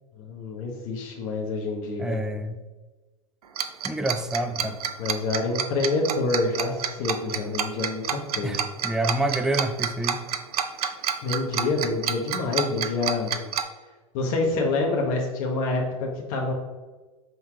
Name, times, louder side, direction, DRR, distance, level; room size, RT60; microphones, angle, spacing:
voice 1, 0.2-2.2 4.6-4.7 5.0-8.6 11.2-13.3 14.1-16.5, left 3 dB, 45° left, -1 dB, 1.2 m, -27 dB
voice 2, 2.0-2.6 3.8-4.8 8.4-10.2, right 1 dB, 5° right, 8 dB, 0.3 m, -27 dB
Tick-tock, 3.6-13.6, right 8 dB, 85° right, 0.6 m, -28 dB
5.4 x 3.8 x 4.7 m, 1.2 s
hypercardioid pair, 120°, 19 cm